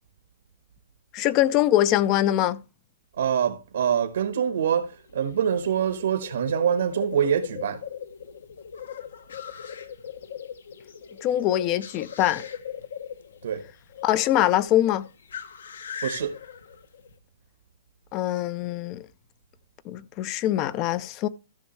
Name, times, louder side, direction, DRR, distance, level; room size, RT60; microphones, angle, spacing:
voice 1, 1.1-2.6 11.2-12.4 14.0-15.1 18.1-19.0 19.9-21.3, left 13 dB, 25° left, 0.4 m, -23 dB
voice 2, 3.2-7.8 13.4-13.6 16.0-16.4, right 8 dB, 75° right, 1.3 m, -25 dB
sound 1, 4.9-17.2, left 8 dB, 85° left, 1.3 m, -39 dB
14.0 x 6.1 x 3.2 m
hypercardioid pair, 170°, 0 cm